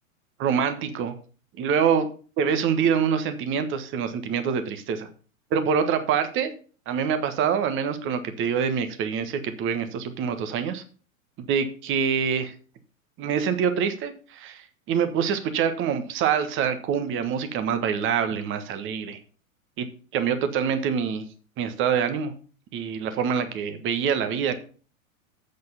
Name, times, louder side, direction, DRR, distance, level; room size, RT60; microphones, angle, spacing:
voice 1, 0.4-1.1 1.6-2.1 2.4-5.1 5.5-6.5 6.9-10.8 11.4-12.5 13.2-19.2 19.8-21.2 21.6-22.3 22.7-24.5, right 7 dB, 30° right, 9 dB, 1.3 m, -25 dB
7.8 x 6.7 x 5.6 m, 0.39 s
figure-of-eight pair, 100°, 42 cm